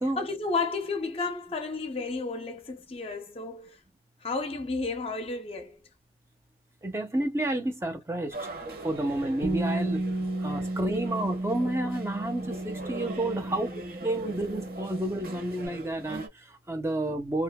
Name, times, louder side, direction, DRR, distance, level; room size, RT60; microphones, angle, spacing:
voice 1, 0.2-3.8 4.2-5.8 9.0-9.1 11.0-11.1 14.2-14.3, left 3 dB, 30° left, 0.5 m, -32 dB
voice 2, 6.8-8.5 8.8-10.0 10.4-13.7 14.0-17.4, right 1 dB, 15° right, 0.6 m, -30 dB
sound 1, 8.3-16.3, right 2 dB, 50° right, 0.9 m, -42 dB
Bass guitar, 9.4-15.7, right 1 dB, 70° right, 1.2 m, -33 dB
2.8 x 2.5 x 2.2 m
head